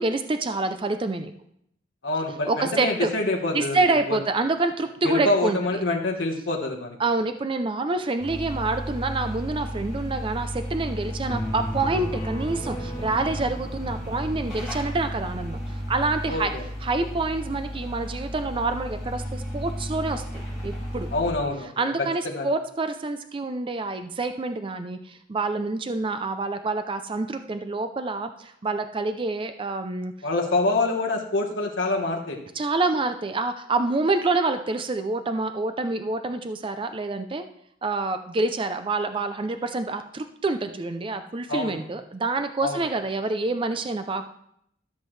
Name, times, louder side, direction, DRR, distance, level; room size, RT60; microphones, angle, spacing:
voice 1, 0.0-1.3 2.5-3.1 3.5-5.6 7.0-16.5 16.8-21.1 21.8-30.1 32.6-37.4 37.8-44.3, right 3 dB, 25° right, 9 dB, 0.4 m, -27 dB
voice 2, 2.0-3.8 4.1-4.2 5.0-7.0 16.3-16.6 21.1-21.9 22.2-22.5 30.2-32.4 41.5-41.8 42.6-42.8, left 2 dB, 80° left, 0 dB, 1.3 m, -26 dB
sound 1, 8.2-21.3, equal, ahead, 4.1 m, -33 dB
sound 2, 11.3-14.8, equal, 15° left, 1.2 m, -36 dB
13.5 x 7.4 x 3.2 m, 0.72 s
head